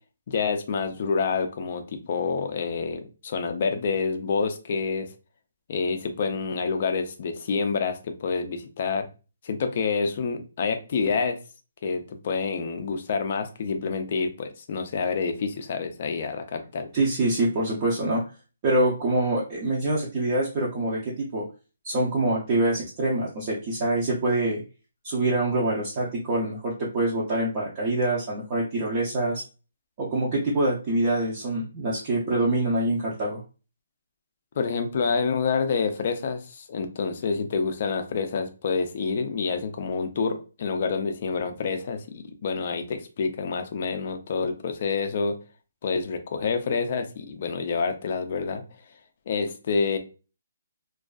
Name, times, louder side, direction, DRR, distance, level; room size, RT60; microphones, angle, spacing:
voice 1, 0.3-5.1 5.7-9.1 9.4-11.4 11.8-16.9 34.6-45.3 45.8-48.6 49.3-50.0, left 5 dB, 40° left, 7 dB, 0.4 m, -28 dB
voice 2, 16.9-18.2 18.6-21.4 21.8-24.6 25.0-29.4 30.0-33.4, right 2 dB, 30° right, -5 dB, 0.5 m, -25 dB
2.5 x 2.3 x 2.2 m, 0.33 s
hypercardioid pair, 170°, 0 cm